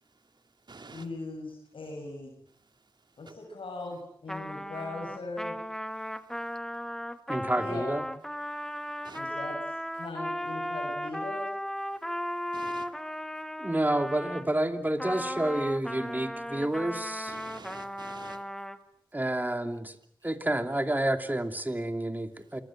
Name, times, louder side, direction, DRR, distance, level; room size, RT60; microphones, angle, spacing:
voice 1, 0.0-1.1 2.5-3.3 6.0-6.6 8.5-9.2 11.9-12.9 17.3-18.4 22.4-22.6, right 3 dB, 60° right, 7 dB, 2.6 m, -51 dB
voice 2, 0.9-2.4 3.2-5.6 7.6-8.0 9.1-9.6 9.9-11.5, left 2 dB, 85° left, 1 dB, 6.6 m, -39 dB
Trumpet, 4.3-14.5 15.0-18.8, equal, 5° left, 1.9 m, -36 dB
voice 3, 7.3-8.1 13.6-17.3 19.1-20.0 20.2-22.6, right 1 dB, 20° right, 7 dB, 2.9 m, -29 dB
28.0 x 23.5 x 7.6 m, 0.68 s
cardioid pair, 50°, 9 cm